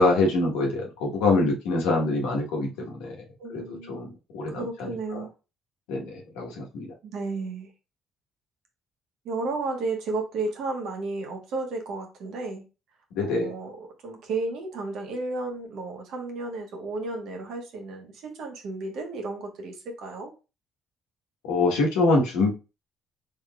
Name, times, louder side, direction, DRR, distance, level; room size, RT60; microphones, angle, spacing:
voice 1, 0.0-3.2 3.5-4.1 4.3-5.2 5.9-6.9 13.1-13.5 21.4-22.5, left 2 dB, 85° left, -1 dB, 1.0 m, -25 dB
voice 2, 3.4-4.1 4.5-5.3 7.0-7.7 9.2-12.6 13.2-20.3, right 3 dB, 70° right, 2 dB, 1.1 m, -33 dB
3.6 x 3.5 x 2.2 m, 0.30 s
hypercardioid pair, 60°, 0 cm